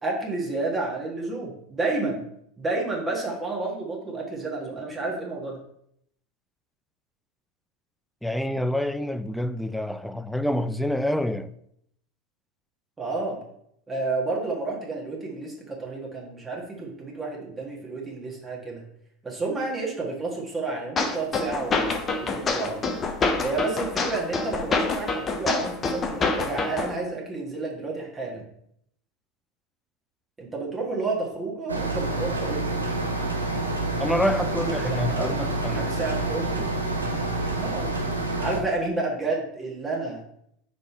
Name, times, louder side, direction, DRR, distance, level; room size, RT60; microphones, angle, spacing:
voice 1, 0.0-2.2 2.6-5.6 13.0-13.4 13.9-18.8 19.2-21.9 22.2-22.9 23.4-28.4 30.4-32.6 34.6-36.7 37.6-37.9 38.4-40.2, right 3 dB, 20° right, 1.8 m, -30 dB
voice 2, 8.2-11.5 34.0-35.8, left 1 dB, 5° left, 0.4 m, -27 dB
sound 1, 21.0-26.9, left 3 dB, 25° left, 0.9 m, -26 dB
sound 2, 31.7-38.6, right 2 dB, 85° right, 0.8 m, -28 dB
5.3 x 4.1 x 4.4 m
figure-of-eight pair, 80°, 0 cm